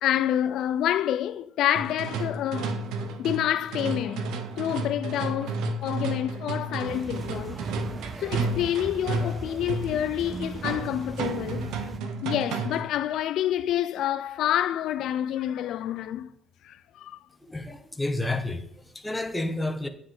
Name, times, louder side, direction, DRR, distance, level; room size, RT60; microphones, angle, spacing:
voice 1, 0.0-2.8 3.2-4.3 4.6-7.6 8.2-11.9 12.2-16.3 16.6-17.2, left 11 dB, 75° left, 0.4 m, -28 dB
sound 1, 1.7-13.0, right 3 dB, 80° right, 1.1 m, -32 dB
sound 2, 6.8-12.0, right 4 dB, 30° right, 0.5 m, -39 dB
voice 2, 17.4-19.9, left 2 dB, 10° left, 1.5 m, -30 dB
9.5 x 8.6 x 3.9 m
cardioid pair, 90°, 0 cm